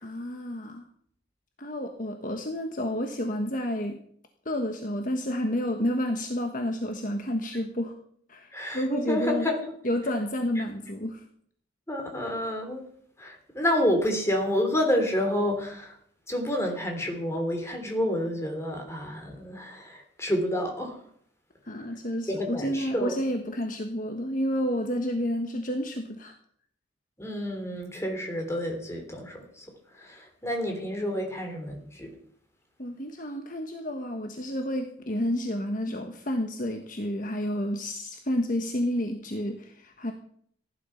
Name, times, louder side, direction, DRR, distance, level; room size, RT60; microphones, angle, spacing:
voice 1, 0.0-0.9 1.6-4.0 4.4-7.9 8.3-9.5 9.8-11.2 21.6-26.3 32.8-40.1, equal, 40° left, 5 dB, 1.3 m, -30 dB
voice 2, 8.5-9.6 11.9-12.8 13.2-16.0 16.3-21.0 22.3-23.2 27.2-29.6 30.0-32.1, left 1 dB, 15° left, 3 dB, 3.3 m, -29 dB
15.5 x 11.0 x 5.8 m, 0.62 s
head